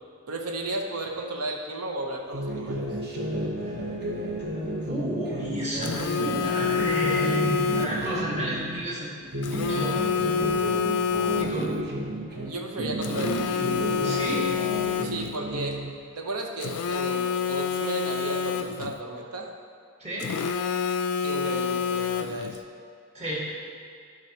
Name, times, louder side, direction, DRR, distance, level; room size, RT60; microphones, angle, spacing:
voice 1, 0.3-2.8 12.5-13.6 15.0-15.9 16.2-19.5 21.2-22.6, right 2 dB, 85° right, 2 dB, 0.8 m, -34 dB
sound 1, 2.3-8.8 9.2-12.5 12.8-15.9, right 1 dB, 50° right, 1.0 m, -32 dB
voice 2, 4.9-9.1 9.4-9.9 11.4-11.8 14.0-14.5 20.0-20.3 23.1-23.4, equal, 30° right, -7 dB, 1.7 m, -31 dB
Telephone, 5.8-8.2 9.4-11.8 13.0-15.4 16.6-19.0 20.2-22.6, left 6 dB, 80° left, 0.4 m, -27 dB
11.0 x 5.1 x 2.9 m, 2.3 s
head